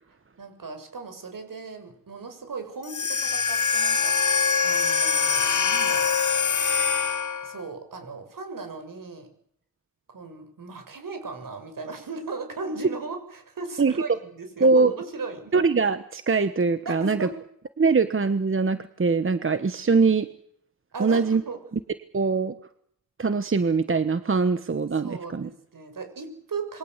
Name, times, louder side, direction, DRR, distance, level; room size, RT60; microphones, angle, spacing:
voice 1, 0.4-4.2 4.6-6.2 7.4-9.3 10.1-15.5 16.9-17.4 19.9-20.1 20.9-21.6 25.0-26.8, right 4 dB, 65° right, 7 dB, 7.2 m, -37 dB
sound 1, 2.8-7.6, left 6 dB, 55° left, 1.3 m, -23 dB
voice 2, 14.6-14.9 15.5-17.3 17.8-20.3 21.0-21.4 22.1-22.5 23.2-25.5, right 4 dB, 35° right, 11 dB, 1.3 m, -22 dB
27.5 x 23.0 x 8.2 m, 0.69 s
wide cardioid pair, 110°, 36 cm